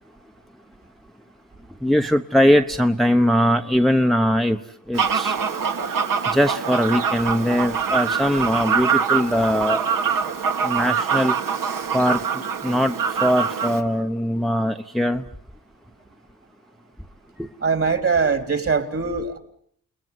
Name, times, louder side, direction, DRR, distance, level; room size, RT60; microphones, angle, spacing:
voice 1, 1.8-4.6 4.9-5.3 6.3-9.8 10.6-11.3 11.9-12.2 12.6-12.9 13.2-15.2 17.4-17.5, equal, ahead, 1.1 m, -20 dB
Fowl, 4.9-13.8, right 6 dB, 70° right, 2.4 m, -24 dB
voice 2, 17.6-19.4, right 5 dB, 40° right, 3.2 m, -22 dB
30.0 x 20.0 x 9.5 m
cardioid pair, 90°, 35 cm